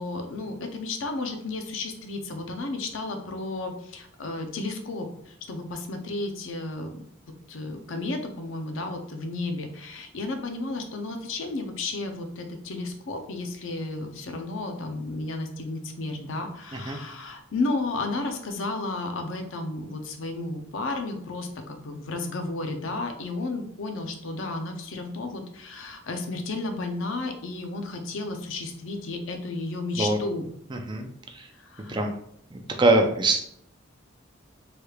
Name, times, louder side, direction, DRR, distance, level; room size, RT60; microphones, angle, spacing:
voice 1, 0.0-6.9 7.5-30.4 31.5-32.0, left 2 dB, 75° left, 5 dB, 0.5 m, -33 dB
voice 2, 30.7-31.1 31.3-31.5 31.9-32.1 32.5-33.4, right 2 dB, 25° right, 3 dB, 0.4 m, -23 dB
3.3 x 3.1 x 2.3 m, 0.70 s
head